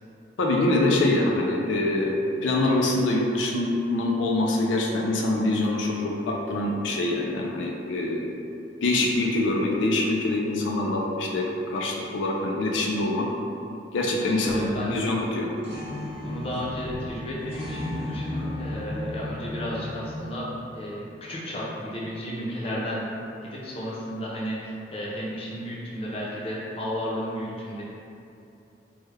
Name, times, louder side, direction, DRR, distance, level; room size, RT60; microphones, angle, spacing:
voice 1, 0.4-8.3 8.8-13.3 13.9-15.5, left 2 dB, 90° left, -1 dB, 0.4 m, -25 dB
voice 2, 14.2-15.0 16.2-20.5 20.7-23.1 23.4-27.8, equal, 30° left, -6 dB, 0.5 m, -33 dB
sound 1, 14.4-14.8 15.2-15.3 15.6-20.2, left 1 dB, 35° right, 0.8 m, -34 dB
3.4 x 2.1 x 3.2 m, 2.7 s
head